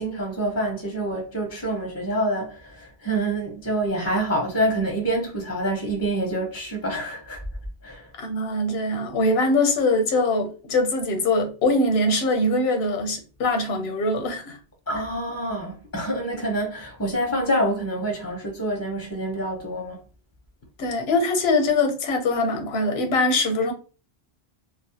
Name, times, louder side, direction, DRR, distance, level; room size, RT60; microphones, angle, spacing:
voice 1, 0.0-7.4 7.8-8.1 14.9-20.0, right 1 dB, 20° left, 0.4 m, -27 dB
voice 2, 8.2-14.6 20.8-23.7, left 2 dB, 80° left, 0.8 m, -22 dB
2.3 x 2.0 x 2.7 m
omnidirectional pair, 1.0 m